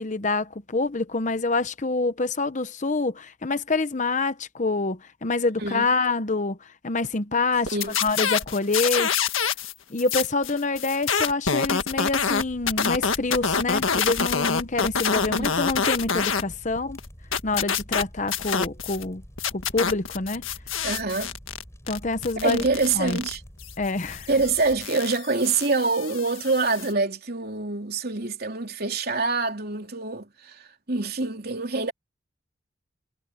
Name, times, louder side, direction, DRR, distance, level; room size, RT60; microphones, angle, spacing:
voice 1, 0.0-6.6 6.8-9.1 9.9-17.0 17.4-19.2 19.5-20.4 21.9-22.6 22.9-23.2 23.8-24.3, left 3 dB, 35° left, 0.9 m, -26 dB
voice 2, 5.6-5.9 7.7-8.0 15.3-15.5 20.8-21.3 22.4-23.4 24.3-30.6 30.9-31.9, right 3 dB, 50° right, 3.4 m, -25 dB
sound 1, 7.7-9.7 10.0-16.4 16.8-19.0 19.4-26.9, left 6 dB, 80° left, 1.7 m, -27 dB
sound 2, 12.1-24.9, equal, 15° left, 6.2 m, -47 dB
head